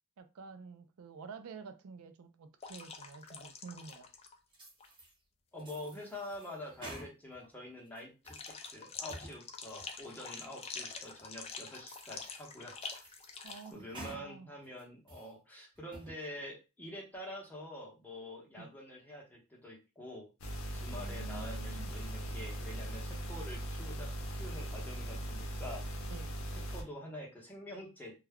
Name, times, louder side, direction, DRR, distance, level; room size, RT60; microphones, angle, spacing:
voice 1, 0.2-4.1 13.4-14.5 18.5-18.7 20.9-22.0 26.1-26.4, right 5 dB, 90° right, 0.4 m, -49 dB
sound 1, 2.6-4.4 4.7-4.9 8.3-13.7, left 5 dB, 30° left, 0.4 m, -46 dB
sound 2, 4.5-5.1 5.6-7.5 7.9-8.5 8.9-9.4 9.8-9.9 10.5-10.6 11.2-11.3 11.7-12.4 12.8-14.2 14.6-15.3 15.8-16.2, right 1 dB, 25° right, 0.9 m, -51 dB
voice 2, 5.5-12.8 13.7-20.3 20.7-25.9 26.7-28.3, left 1 dB, 10° left, 0.8 m, -46 dB
sound 3, 20.4-26.8, right 1 dB, 70° left, 0.6 m, -39 dB
2.3 x 2.1 x 3.4 m
head